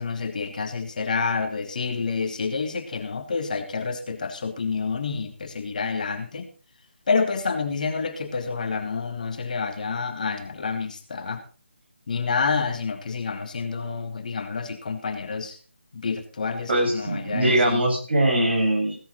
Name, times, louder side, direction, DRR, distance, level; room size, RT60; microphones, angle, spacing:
voice 1, 0.0-6.5 7.1-11.4 12.1-15.5 16.0-16.7 16.9-17.8, left 4 dB, 40° left, 6 dB, 1.9 m, -28 dB
voice 2, 16.7-19.0, right 1 dB, 60° right, 1 dB, 7.3 m, -22 dB
16.5 x 11.0 x 4.0 m, 0.38 s
figure-of-eight pair, 160°, 6 cm